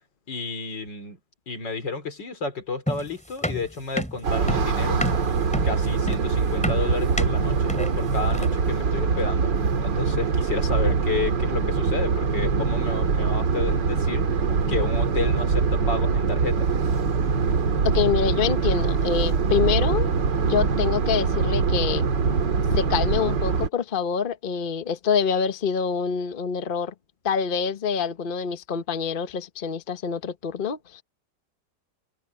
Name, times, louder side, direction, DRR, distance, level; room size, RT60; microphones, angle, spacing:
voice 1, 0.3-1.2 1.5-5.0 5.6-9.5 9.8-16.7, left 4 dB, 85° left, 4.0 m, -31 dB
sound 1, 2.9-8.7, equal, 5° left, 3.0 m, -30 dB
sound 2, 4.2-23.7, right 5 dB, 85° right, 2.6 m, -23 dB
voice 2, 17.8-20.1 20.4-22.0 22.7-26.9 27.2-31.0, left 7 dB, 35° left, 1.0 m, -26 dB
omnidirectional pair, 1.9 m